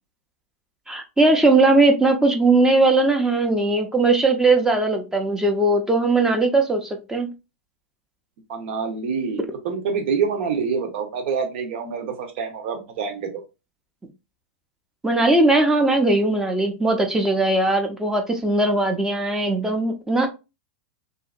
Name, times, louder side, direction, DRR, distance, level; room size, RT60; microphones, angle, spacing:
voice 1, 0.9-7.3 15.0-20.3, right 2 dB, 10° right, 3 dB, 0.6 m, -19 dB
voice 2, 8.5-13.4, right 5 dB, 60° right, 5 dB, 0.9 m, -26 dB
2.7 x 2.5 x 2.4 m, 0.27 s
hypercardioid pair, 115°, 7 cm